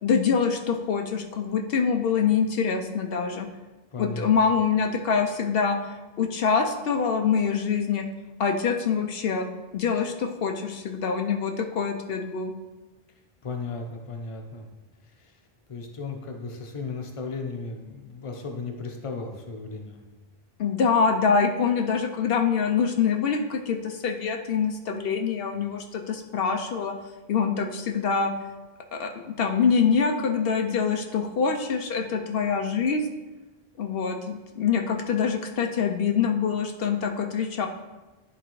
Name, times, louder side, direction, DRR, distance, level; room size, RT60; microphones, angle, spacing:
voice 1, 0.0-3.5 4.0-8.0 8.4-9.5 9.7-12.5 20.6-26.9 27.3-28.3 28.9-29.1 29.4-33.1 33.8-37.7, left 6 dB, 75° left, 3 dB, 0.8 m, -25 dB
voice 2, 3.9-4.3 13.4-14.7 15.2-15.3 15.7-20.0, left 3 dB, 35° left, 3 dB, 0.8 m, -35 dB
11.0 x 3.9 x 3.1 m, 1.1 s
omnidirectional pair, 1.0 m